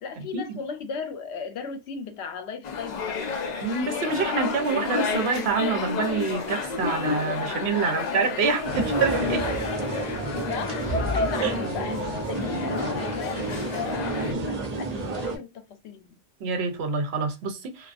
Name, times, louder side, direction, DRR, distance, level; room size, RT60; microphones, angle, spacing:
voice 1, 0.0-3.3 7.8-8.0 9.3-14.2 14.5-16.1, left 6 dB, 75° left, 0.9 m, -37 dB
sound 1, 2.6-14.3, left 5 dB, 55° left, 0.5 m, -31 dB
voice 2, 3.6-9.4 11.4-11.5 16.4-17.9, right 5 dB, 70° right, 0.9 m, -27 dB
sound 2, 8.6-15.4, right 2 dB, 45° right, 0.6 m, -30 dB
2.3 x 2.3 x 2.4 m
omnidirectional pair, 1.2 m